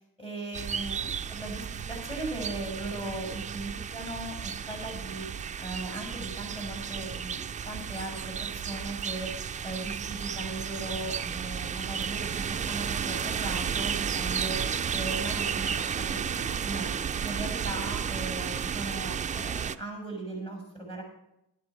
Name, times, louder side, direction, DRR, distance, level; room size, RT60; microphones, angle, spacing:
voice 1, 0.2-5.3 5.6-9.3 9.6-16.9 17.2-21.0, right 2 dB, 15° left, 1 dB, 5.9 m, -38 dB
sound 1, 0.5-19.8, right 7 dB, 20° right, 0.3 m, -33 dB
12.5 x 11.5 x 4.6 m, 0.86 s
cardioid pair, 115°, 39 cm